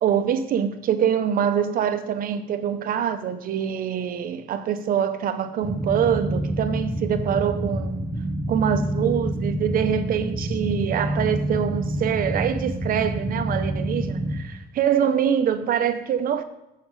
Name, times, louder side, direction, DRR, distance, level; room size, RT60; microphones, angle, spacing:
voice 1, 0.0-8.0 8.5-16.4, right 8 dB, 55° right, 0.8 m, -24 dB
sound 1, 5.6-14.4, right 1 dB, 20° right, 1.1 m, -27 dB
7.5 x 7.1 x 3.9 m
cardioid pair, 110°, 17 cm